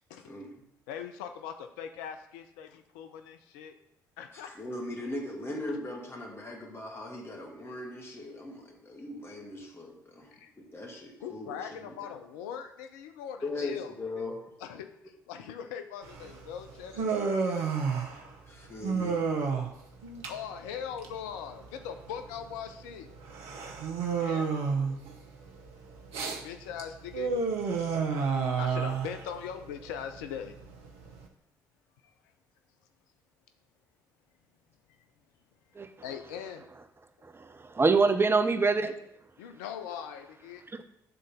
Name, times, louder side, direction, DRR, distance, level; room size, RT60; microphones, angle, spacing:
voice 1, 0.9-3.8 4.2-4.5 5.7-5.8 10.3-10.5 11.2-14.3 14.6-17.1 20.3-23.1 24.2-24.5 26.4-27.3 28.5-30.5 32.0-32.1 36.0-36.7 39.4-40.6, left 8 dB, 70° left, 7 dB, 0.5 m, -41 dB
voice 2, 4.3-12.2 13.4-14.4 18.5-19.2, left 2 dB, 25° left, 0 dB, 2.0 m, -39 dB
Human voice, 16.0-31.3, right 5 dB, 65° right, 0.8 m, -32 dB
voice 3, 37.2-38.9 40.7-40.8, right 4 dB, 25° right, 8 dB, 0.7 m, -25 dB
7.9 x 3.8 x 5.4 m, 0.79 s
figure-of-eight pair, 45°, 10 cm